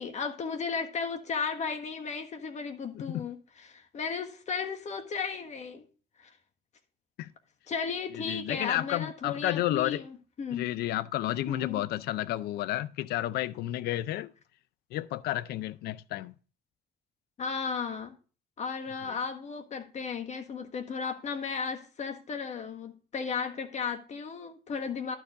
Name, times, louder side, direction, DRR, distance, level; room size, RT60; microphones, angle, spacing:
voice 1, 0.0-5.8 6.2-6.3 7.7-10.7 11.5-11.8 17.4-18.1 18.6-25.2, left 5 dB, 45° left, 1.5 m, -35 dB
voice 2, 2.9-3.3 7.2-7.3 8.1-10.0 10.5-14.3 14.9-16.3, left 14 dB, 70° left, 0.5 m, -31 dB
11.5 x 4.6 x 4.7 m
cardioid pair, 110°, 17 cm